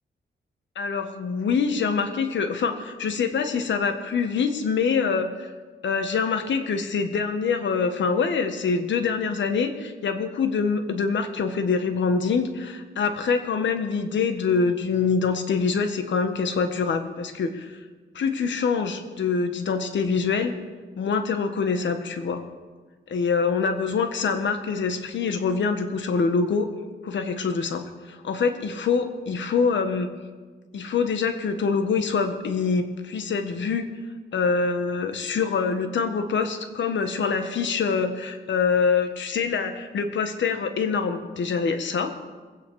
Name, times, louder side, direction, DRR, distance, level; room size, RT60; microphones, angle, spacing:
voice 1, 0.7-5.5 5.8-17.8 18.1-20.6 21.0-22.4 23.1-26.7 27.0-30.1 30.7-33.9 34.3-42.1, left 5 dB, 75° left, 7 dB, 1.4 m, -25 dB
22.0 x 9.0 x 4.8 m, 1.4 s
cardioid pair, 90°, 19 cm